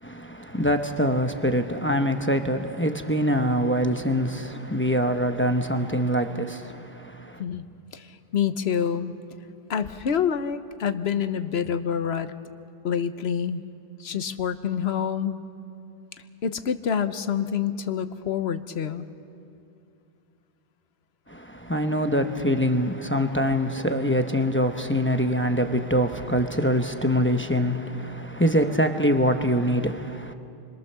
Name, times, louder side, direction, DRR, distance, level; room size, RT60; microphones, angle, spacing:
voice 1, 0.0-7.4 21.3-30.3, equal, 10° left, 0.9 m, -24 dB
voice 2, 7.9-9.1 9.7-12.3 12.8-13.6 14.0-15.4 16.4-19.1, left 8 dB, 80° left, 1.1 m, -27 dB
28.5 x 22.5 x 6.9 m
omnidirectional pair, 1.0 m